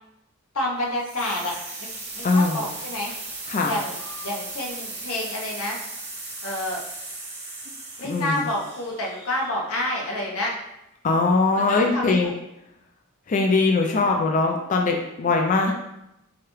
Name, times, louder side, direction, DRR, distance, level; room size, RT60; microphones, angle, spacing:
voice 1, 0.5-1.9 2.1-3.1 3.6-4.0 4.2-5.8 6.4-6.8 8.0-10.5 11.6-12.2, left 1 dB, 90° left, -2 dB, 0.8 m, -29 dB
sound 1, 0.9-9.8, right 2 dB, 30° right, 1.3 m, -37 dB
voice 2, 2.2-2.7 3.5-3.8 8.0-8.5 11.0-12.3 13.3-15.7, left 3 dB, 35° left, 2 dB, 0.3 m, -21 dB
4.7 x 2.3 x 3.1 m, 0.86 s
head